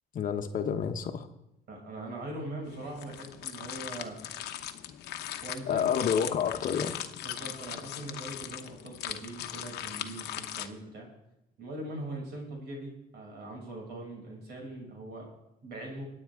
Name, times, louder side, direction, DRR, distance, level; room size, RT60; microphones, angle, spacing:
voice 1, 0.1-1.3 5.7-6.9, left 7 dB, 55° left, 7 dB, 1.1 m, -29 dB
voice 2, 1.7-4.1 5.4-5.9 6.8-6.9 7.2-11.1 11.6-15.3 15.6-16.0, right 1 dB, 75° right, -1 dB, 6.6 m, -41 dB
sound 1, 2.7-10.7, left 12 dB, 75° left, 1.0 m, -39 dB
26.0 x 8.7 x 3.6 m, 0.87 s
cardioid pair, 110°, 17 cm